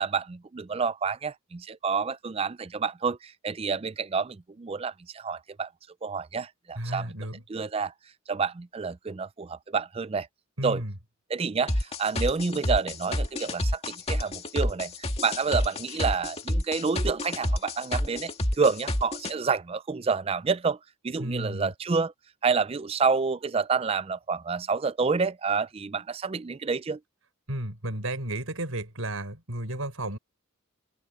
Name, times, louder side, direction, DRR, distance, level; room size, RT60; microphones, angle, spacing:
voice 1, 0.0-5.7 6.0-7.1 7.5-7.9 8.3-10.3 10.6-10.8 11.3-14.9 15.2-20.8 21.0-22.1 22.4-27.0, right 5 dB, 25° right, 0.4 m, -28 dB
voice 2, 6.7-7.4 10.6-10.9 21.2-21.7 27.5-30.2, right 1 dB, 75° right, 5.0 m, -33 dB
sound 1, 11.7-19.3, left 1 dB, 30° left, 2.2 m, -28 dB
open air
head